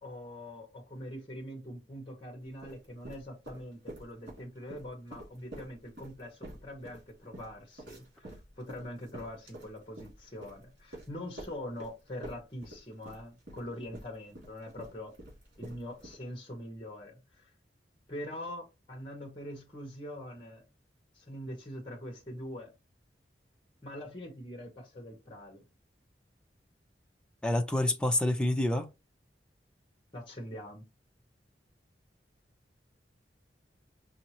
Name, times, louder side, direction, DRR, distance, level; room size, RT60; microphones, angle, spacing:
voice 1, 0.0-15.2 15.6-17.5 18.1-20.6 21.1-22.7 23.8-25.6 30.1-30.9, left 1 dB, 30° left, 1.1 m, -43 dB
sound 1, 2.5-4.4 4.7-11.9 12.2-16.1, right 1 dB, 65° right, 3.0 m, -47 dB
voice 2, 27.4-28.9, left 1 dB, 5° left, 0.5 m, -27 dB
5.5 x 2.8 x 2.9 m
head